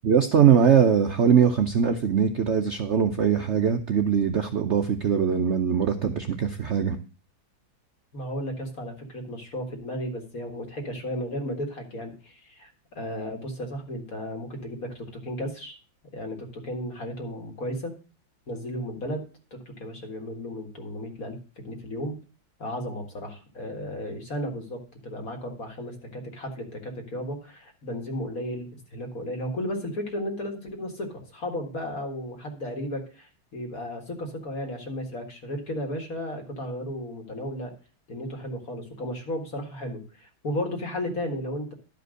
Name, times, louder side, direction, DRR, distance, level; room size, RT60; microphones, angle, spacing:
voice 1, 0.0-7.0, right 7 dB, 85° right, 7 dB, 0.6 m, -21 dB
voice 2, 8.1-15.8 16.1-17.9 18.5-19.2 19.5-21.4 21.6-22.2 22.6-37.7 38.1-41.7, equal, 45° left, 4 dB, 2.2 m, -34 dB
11.5 x 5.2 x 6.3 m, 0.35 s
omnidirectional pair, 2.2 m